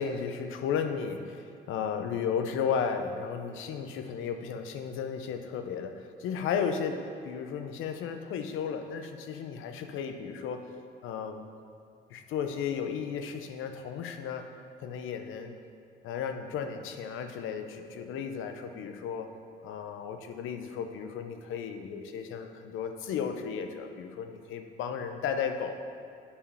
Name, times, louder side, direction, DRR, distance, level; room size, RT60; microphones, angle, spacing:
voice 1, 0.0-10.6 11.0-11.4 12.1-14.5 14.8-15.5 16.0-19.3 19.6-25.7, left 7 dB, 90° left, 7 dB, 0.7 m, -34 dB
8.6 x 4.9 x 5.5 m, 2.3 s
cardioid pair, 90°, 20 cm